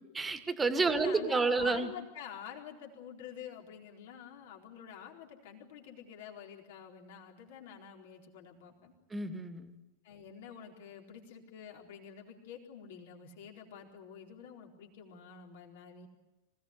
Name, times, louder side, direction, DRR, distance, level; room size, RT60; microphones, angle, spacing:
voice 1, 0.1-1.9 9.1-9.8, right 3 dB, 15° right, 8 dB, 2.3 m, -30 dB
voice 2, 0.8-8.9 10.0-16.1, left 8 dB, 55° left, 1 dB, 4.2 m, -48 dB
26.0 x 18.0 x 9.8 m, 1.1 s
figure-of-eight pair, 90°, 0 cm